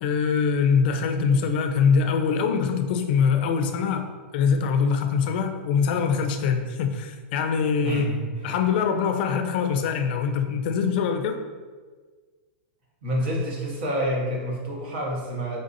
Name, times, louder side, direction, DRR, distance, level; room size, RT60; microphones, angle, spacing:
voice 1, 0.0-4.1 4.3-8.1 8.4-11.4, left 6 dB, 50° left, 6 dB, 0.4 m, -23 dB
voice 2, 7.8-8.3 13.0-15.6, equal, 60° right, -2 dB, 1.1 m, -28 dB
3.9 x 3.4 x 2.6 m, 1.5 s
supercardioid pair, 155°, 7 cm